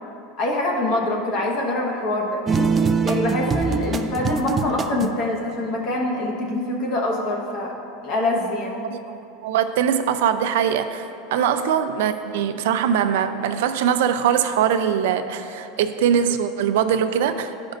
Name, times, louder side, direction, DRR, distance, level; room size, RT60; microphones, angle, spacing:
voice 1, 0.4-2.4 3.0-7.7 8.0-8.8 11.3-11.5, left 2 dB, 45° left, -1 dB, 1.3 m, -24 dB
sound 1, 2.5-5.3, right 5 dB, 20° right, 0.3 m, -23 dB
voice 2, 8.8-11.0 11.3-17.5, right 8 dB, 80° right, 9 dB, 0.5 m, -22 dB
13.0 x 5.2 x 2.6 m, 2.8 s
supercardioid pair, 150°, 0 cm